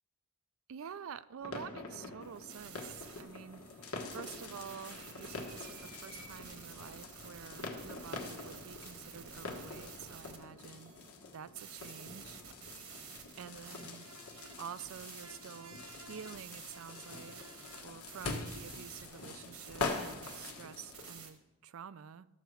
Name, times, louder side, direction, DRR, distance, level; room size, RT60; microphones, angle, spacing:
voice 1, 0.7-3.6 4.1-11.0 11.3-12.4 13.4-14.1 14.6-22.3, right 7 dB, 60° right, 0.4 m, -49 dB
sound 1, 1.4-21.2, left 3 dB, 85° left, 1.4 m, -45 dB
sound 2, 2.2-21.3, right 6 dB, 80° right, 1.3 m, -52 dB
13.0 x 4.6 x 6.8 m
head